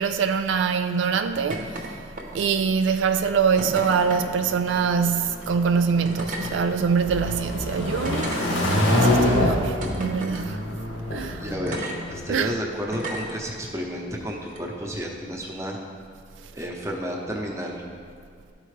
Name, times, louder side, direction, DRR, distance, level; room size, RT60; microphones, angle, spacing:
voice 1, 0.0-1.7 2.3-8.3 8.9-10.7 11.1-11.4 12.3-12.5, right 6 dB, 80° right, 0.3 m, -24 dB
sound 1, 1.5-1.9 2.2-2.6 3.6-4.3 5.3-5.5 6.0-6.5 7.2-7.3 8.0-8.9 9.8-10.4 11.7-12.0 12.9-13.4 14.5-14.6, right 1 dB, 40° right, 0.8 m, -34 dB
sound 2, 3.9-12.2, left 1 dB, 90° left, 1.6 m, -26 dB
voice 2, 11.4-15.8 16.5-17.8, equal, 15° right, 0.8 m, -31 dB
12.5 x 4.4 x 3.3 m
head